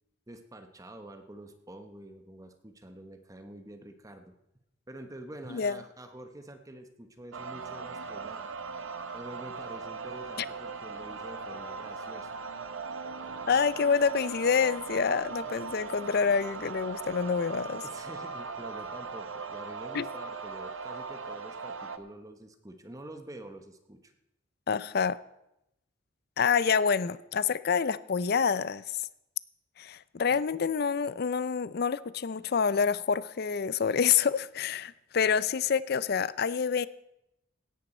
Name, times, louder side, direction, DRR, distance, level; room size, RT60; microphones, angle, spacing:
voice 1, 0.3-4.3 4.9-8.5 9.1-12.3 15.7-15.8 17.8-24.1 30.3-30.4, right 1 dB, 15° right, 7 dB, 1.0 m, -47 dB
sound 1, 7.3-22.0, right 4 dB, 80° right, 1.0 m, -39 dB
voice 2, 13.5-17.8 19.9-20.0 24.7-25.2 26.4-29.0 29.8-36.9, left 6 dB, 50° left, 18 dB, 0.5 m, -27 dB
17.0 x 10.5 x 4.4 m, 0.85 s
head